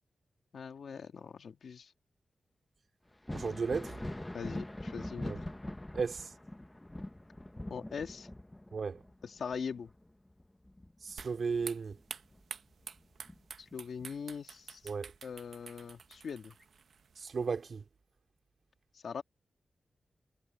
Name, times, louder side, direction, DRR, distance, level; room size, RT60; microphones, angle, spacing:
voice 1, 0.5-1.9 4.3-5.3 7.7-8.3 9.2-9.9 13.6-14.8 15.2-16.5 18.9-19.2, left 6 dB, 75° left, 2.1 m, -41 dB
Thunder, 3.1-12.4 12.8-14.0 15.6-15.7 16.5-16.6, left 1 dB, 10° left, 0.8 m, -44 dB
voice 2, 3.3-4.0 5.2-5.4 5.9-6.3 8.7-9.0 11.0-12.0 14.8-15.1 17.2-17.8, right 5 dB, 60° right, 2.5 m, -35 dB
sound 1, 11.2-17.7, right 6 dB, 80° right, 1.0 m, -49 dB
wide cardioid pair, 125°, 0 cm